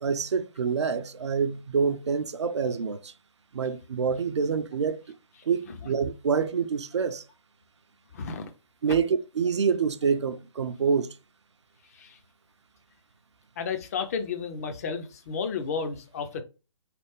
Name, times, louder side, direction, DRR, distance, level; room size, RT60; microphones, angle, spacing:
voice 1, 0.0-3.1 3.5-5.0 5.4-7.3 8.8-11.2, right 6 dB, 60° right, 0.4 m, -27 dB
voice 2, 8.1-8.5 11.9-12.2 13.6-16.4, left 5 dB, 30° left, 0.5 m, -32 dB
4.1 x 3.3 x 3.0 m
figure-of-eight pair, 135°, 17 cm